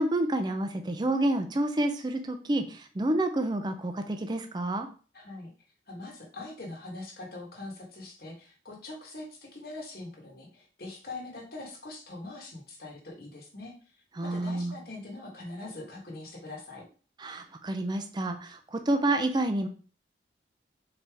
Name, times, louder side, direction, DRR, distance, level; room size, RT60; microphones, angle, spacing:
voice 1, 0.0-4.9 14.2-14.7 17.2-19.7, right 1 dB, 25° right, 6 dB, 0.4 m, -29 dB
voice 2, 5.1-5.5 5.9-13.7 14.2-16.9, left 2 dB, 55° left, 0 dB, 1.3 m, -42 dB
4.1 x 3.3 x 3.4 m, 0.38 s
head